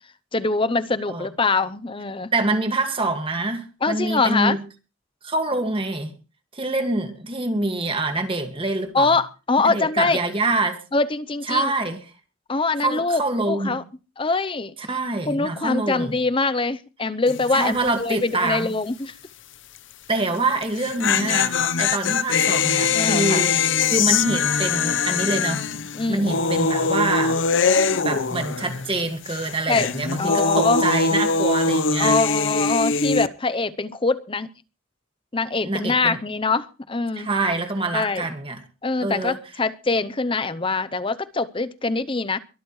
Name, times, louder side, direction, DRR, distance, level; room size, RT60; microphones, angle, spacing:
voice 1, 0.3-2.3 3.8-4.6 8.9-10.2 10.9-11.7 12.5-13.8 14.2-14.7 15.3-19.1 21.1-21.2 22.9-23.5 25.9-26.5 29.7-29.9 30.2-30.8 32.0-34.5 35.3-37.3 37.9-38.3 38.8-42.4, left 3 dB, 25° left, 14 dB, 0.6 m, -23 dB
voice 2, 2.3-4.6 5.2-6.1 6.5-9.2 9.6-10.8 11.5-12.1 12.8-13.8 14.8-16.1 17.5-18.7 20.1-23.6 23.8-25.6 26.1-27.4 28.0-32.2 35.6-36.2 37.2-38.6 39.0-39.4, right 2 dB, 25° right, 6 dB, 1.9 m, -25 dB
sound 1, 17.3-17.6 17.9-18.0 20.6-29.0 29.3-33.3, left 5 dB, 55° left, 0.8 m, -22 dB
23.0 x 13.0 x 3.1 m, 0.33 s
head